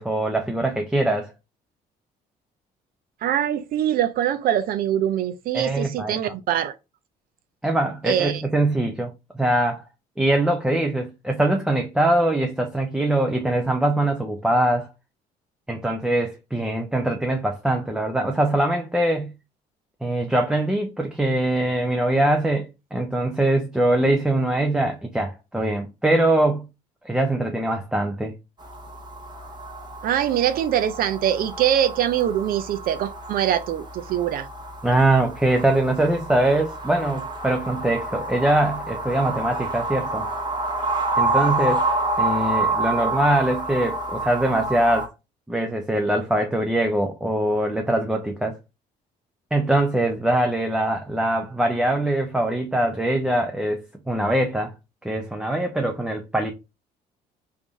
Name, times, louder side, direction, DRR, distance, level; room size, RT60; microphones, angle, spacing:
voice 1, 0.0-1.3 5.5-6.2 7.6-9.8 10.2-14.9 15.7-19.3 20.0-26.6 27.0-28.3 34.8-40.3 41.2-41.8 42.2-45.1 45.5-48.6 49.5-53.8 54.1-54.7 55.0-56.5, right 1 dB, 5° right, 0.5 m, -22 dB
voice 2, 3.2-6.7 8.0-8.4 30.0-34.5, right 10 dB, 60° right, 0.4 m, -23 dB
sound 1, 28.6-45.1, right 2 dB, 25° right, 1.0 m, -28 dB
3.5 x 2.6 x 3.4 m
cardioid pair, 110°, 17 cm